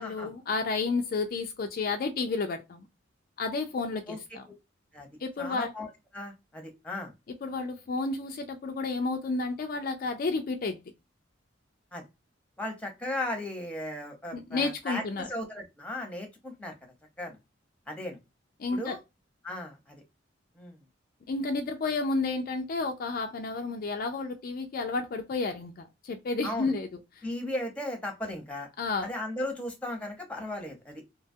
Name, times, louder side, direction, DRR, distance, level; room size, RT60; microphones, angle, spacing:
voice 1, 0.0-2.8 3.4-4.4 5.2-5.7 7.4-10.8 14.3-15.3 18.6-19.0 21.3-26.9 27.2-27.3 28.8-29.1, left 3 dB, 50° left, 0.3 m, -31 dB
voice 2, 5.4-7.1 11.9-12.1 12.6-16.7 17.2-17.4 17.9-18.2 18.7-19.0 19.4-20.0 20.5-20.8 26.4-26.7 27.2-28.7 29.0-31.0, left 1 dB, 5° left, 0.8 m, -36 dB
2.8 x 2.3 x 2.5 m
head